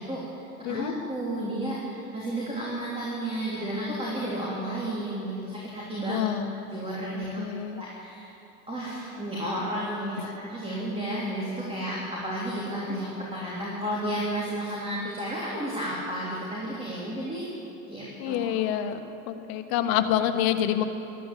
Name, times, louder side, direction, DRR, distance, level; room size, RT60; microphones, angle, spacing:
voice 1, 0.0-6.2 6.7-7.4 7.8-8.3 8.7-17.5 17.9-18.6, right 1 dB, 15° right, -5 dB, 3.5 m, -32 dB
voice 2, 6.1-6.5 7.1-7.8 18.2-19.0 19.3-20.8, left 11 dB, 55° left, 6 dB, 1.5 m, -27 dB
13.5 x 12.5 x 8.5 m, 2.9 s
hypercardioid pair, 90°, 43 cm